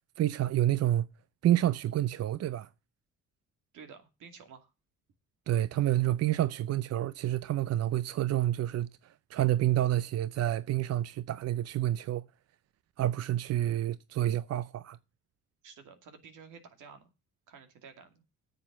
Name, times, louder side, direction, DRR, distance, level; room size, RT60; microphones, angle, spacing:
voice 1, 0.2-1.1 1.4-2.7 5.5-12.3 13.0-15.0, right 13 dB, 55° right, 0.5 m, -28 dB
voice 2, 3.7-4.7 15.6-17.1 17.5-18.1, right 6 dB, 85° right, 2.4 m, -51 dB
9.5 x 7.7 x 7.3 m
cardioid pair, 90°, 30 cm